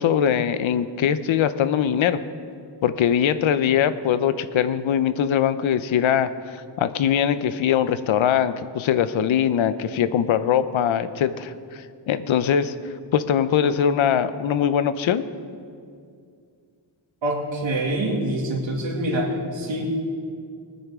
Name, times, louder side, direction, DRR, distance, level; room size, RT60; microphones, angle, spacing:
voice 1, 0.0-2.2 2.8-12.7 13.1-15.2, left 9 dB, 85° left, 13 dB, 0.7 m, -22 dB
voice 2, 17.2-19.9, right 1 dB, 75° right, -1 dB, 2.3 m, -25 dB
19.5 x 9.6 x 3.6 m, 2.3 s
wide cardioid pair, 100°, 46 cm